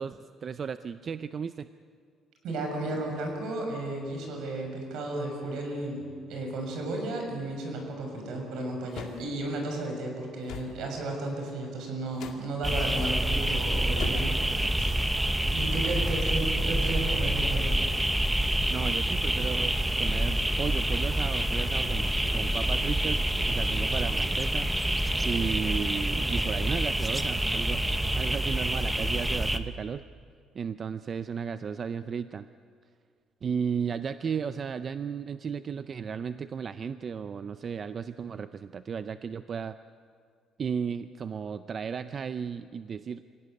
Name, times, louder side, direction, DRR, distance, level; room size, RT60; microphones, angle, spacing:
voice 1, 0.0-1.7 18.7-24.7 25.2-30.0 30.5-32.5 33.4-39.7 40.6-43.2, right 6 dB, 35° right, 12 dB, 0.5 m, -34 dB
voice 2, 2.4-14.9 15.5-17.8, right 2 dB, 75° right, 2 dB, 6.5 m, -34 dB
sound 1, 8.9-9.2 10.5-10.8 12.1-12.5 14.0-14.4, left 8 dB, 70° left, 2.2 m, -40 dB
sound 2, 12.6-29.6, right 1 dB, 5° right, 1.0 m, -27 dB
26.0 x 17.5 x 9.4 m, 2.2 s
cardioid pair, 145°, 0 cm